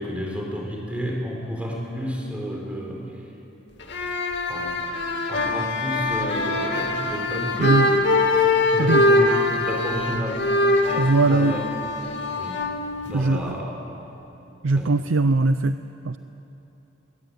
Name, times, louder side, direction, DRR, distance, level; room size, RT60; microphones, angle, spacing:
voice 1, 0.0-3.2 4.5-4.8 5.3-8.1 8.5-10.5 10.9-11.7 12.4-12.7 13.0-13.8 14.7-15.0, equal, 5° right, -1 dB, 4.2 m, -31 dB
sound 1, 3.8-13.6, left 2 dB, 65° left, 2.4 m, -23 dB
voice 2, 7.6-7.9 8.8-9.0 11.0-11.6 13.1-13.5 14.6-15.8 16.0-16.2, right 3 dB, 85° right, 11 dB, 0.6 m, -20 dB
22.5 x 20.5 x 9.4 m, 3.0 s
head